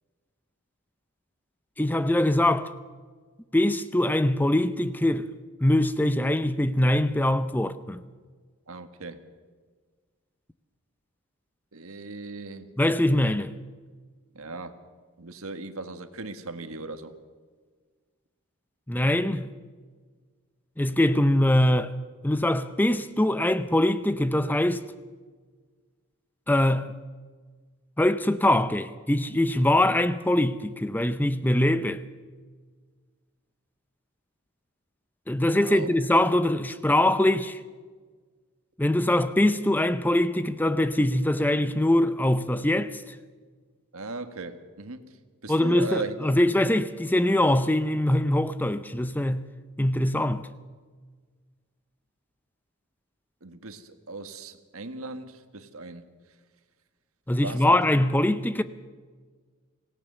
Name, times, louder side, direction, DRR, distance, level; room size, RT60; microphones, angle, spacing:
voice 1, 1.8-2.7 3.5-5.3 5.6-8.0 12.8-13.5 18.9-19.5 20.8-21.9 22.2-24.8 26.5-26.9 28.0-32.0 35.3-37.6 38.8-43.0 45.5-49.5 49.8-50.5 57.3-58.6, left 1 dB, 10° left, 0.5 m, -23 dB
voice 2, 8.7-9.2 11.7-12.7 14.3-14.7 15.2-17.1 35.6-35.9 43.9-45.1 45.4-46.1 53.4-56.0 57.4-57.8, right 3 dB, 80° right, 1.6 m, -37 dB
25.0 x 17.5 x 6.8 m
head